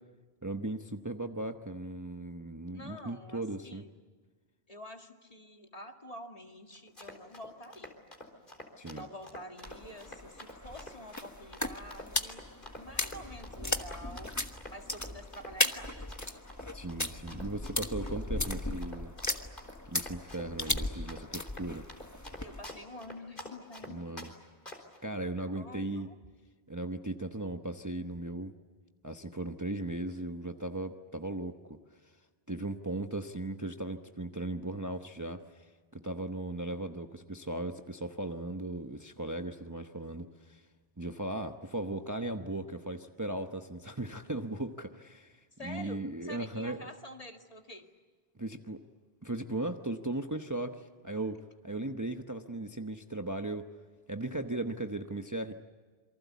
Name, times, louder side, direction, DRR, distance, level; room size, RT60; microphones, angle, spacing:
voice 1, 0.4-3.8 8.8-9.1 16.7-19.1 19.9-21.9 23.9-24.3 25.0-26.1 26.7-28.5 29.0-31.8 32.0-32.1 32.5-40.6 41.0-46.8 48.4-48.8 49.2-53.7 54.1-55.5, right 2 dB, 20° right, 6 dB, 1.0 m, -37 dB
voice 2, 2.7-3.9 4.7-8.0 8.9-12.4 12.8-14.3 14.7-15.9 22.4-24.0 25.5-26.2 45.6-47.9, left 1 dB, 35° left, 4 dB, 2.1 m, -48 dB
Run, 6.7-24.3 24.7-25.0, left 1 dB, 50° left, 4.2 m, -47 dB
sound 1, 9.6-22.7, left 1 dB, 15° left, 1.3 m, -36 dB
28.0 x 24.0 x 8.3 m, 1.4 s
omnidirectional pair, 1.1 m